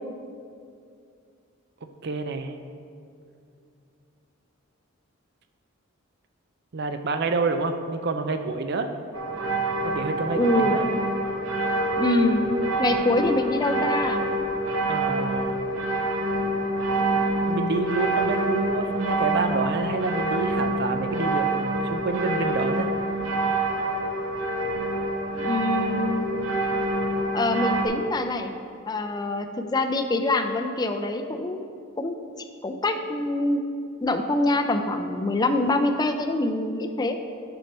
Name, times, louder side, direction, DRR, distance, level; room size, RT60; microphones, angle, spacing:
voice 1, 2.0-2.5 6.7-8.9 9.8-10.9 14.9-15.6 17.5-22.9, right 3 dB, 55° right, 7 dB, 0.5 m, -28 dB
sound 1, 9.1-27.9, right 2 dB, 70° right, 1.0 m, -26 dB
voice 2, 10.3-10.8 12.0-12.4 12.8-14.2 25.3-26.2 27.3-28.5 28.9-31.6 32.0-32.2 32.6-33.6 34.0-37.2, left 2 dB, 20° left, 6 dB, 0.4 m, -25 dB
9.3 x 5.5 x 4.3 m, 2.5 s
head